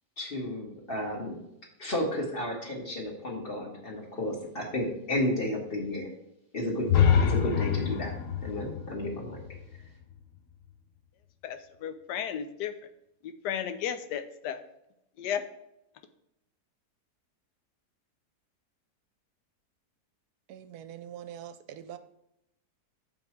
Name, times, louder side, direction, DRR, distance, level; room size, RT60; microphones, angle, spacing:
voice 1, 0.2-1.4 1.8-6.1 6.5-8.2 8.4-9.4, left 1 dB, 35° left, 0 dB, 1.8 m, -32 dB
sound 1, 6.9-10.7, left 8 dB, 60° left, 0.9 m, -27 dB
voice 2, 11.4-12.7 13.2-14.6 15.2-15.4, left 9 dB, 90° left, 11 dB, 1.3 m, -34 dB
voice 3, 20.5-22.0, right 10 dB, 75° right, 11 dB, 1.1 m, -43 dB
6.9 x 5.4 x 4.5 m, 0.84 s
omnidirectional pair, 1.7 m